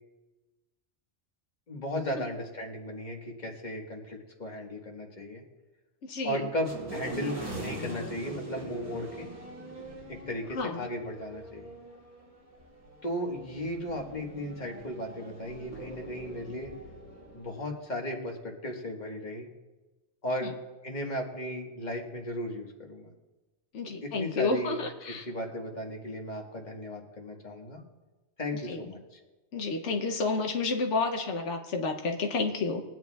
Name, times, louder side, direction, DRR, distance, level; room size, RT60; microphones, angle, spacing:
voice 1, 1.7-5.4 6.2-9.3 10.1-11.7 13.0-16.7 17.3-19.5 20.2-20.5 20.8-23.1 24.0-24.8 25.1-27.8 28.4-29.2, equal, 40° left, 1 dB, 1.6 m, -36 dB
voice 2, 6.0-6.5 10.5-10.9 20.4-20.5 23.7-25.3 28.7-28.9 29.5-32.8, left 3 dB, 80° left, 3 dB, 1.1 m, -30 dB
sound 1, 6.6-17.7, right 1 dB, 40° right, 2.6 m, -43 dB
22.0 x 9.2 x 2.3 m, 1.2 s
omnidirectional pair, 1.2 m